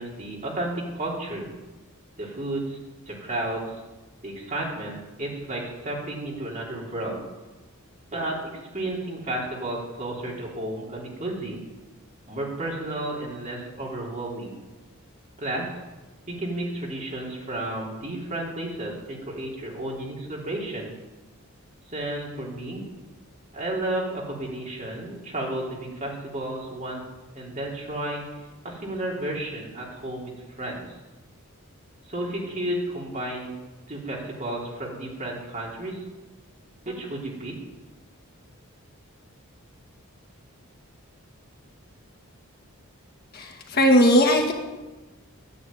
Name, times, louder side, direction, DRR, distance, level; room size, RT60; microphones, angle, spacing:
voice 1, 0.0-1.5 2.2-2.8 3.1-3.6 4.2-7.2 8.1-11.6 12.3-14.6 15.4-15.7 16.3-20.9 21.9-22.8 23.5-27.0 27.3-28.2 28.6-30.3 30.6-30.8 32.1-33.6 33.9-36.0 36.8-37.6, right 1 dB, 35° right, -3 dB, 4.0 m, -32 dB
voice 2, 43.3-44.5, equal, 45° left, 2 dB, 1.8 m, -18 dB
12.5 x 9.8 x 9.1 m, 1.2 s
head